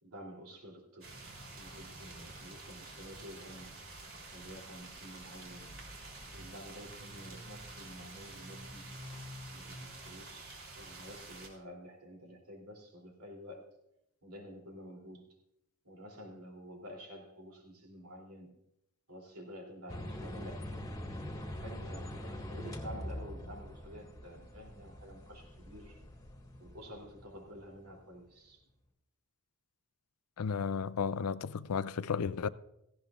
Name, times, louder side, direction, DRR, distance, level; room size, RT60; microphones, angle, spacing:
voice 1, 0.0-3.8 4.3-5.8 6.3-8.9 9.4-13.7 14.2-15.4 15.8-18.6 19.1-20.7 21.5-26.0 26.6-28.6, equal, 80° right, 3.0 m, -50 dB
sound 1, 1.0-11.5, right 2 dB, 60° right, 3.2 m, -48 dB
sound 2, 19.9-27.9, left 1 dB, 15° left, 1.7 m, -44 dB
voice 2, 30.4-32.5, left 6 dB, 85° left, 0.5 m, -33 dB
17.5 x 15.0 x 2.4 m
head